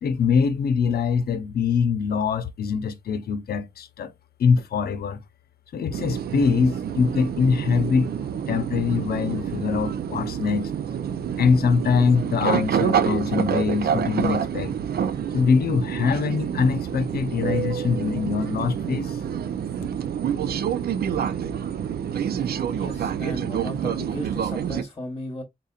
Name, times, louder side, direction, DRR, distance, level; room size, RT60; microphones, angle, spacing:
voice 1, 0.0-4.1 4.4-5.2 5.7-8.1 8.5-10.7 11.4-14.8 15.3-19.2, left 6 dB, 85° left, 0.7 m, -23 dB
sound 1, 5.9-24.8, right 8 dB, 85° right, 0.5 m, -27 dB
voice 2, 22.7-25.4, left 1 dB, 25° left, 1.1 m, -36 dB
4.1 x 3.8 x 2.4 m
wide cardioid pair, 170°, 16 cm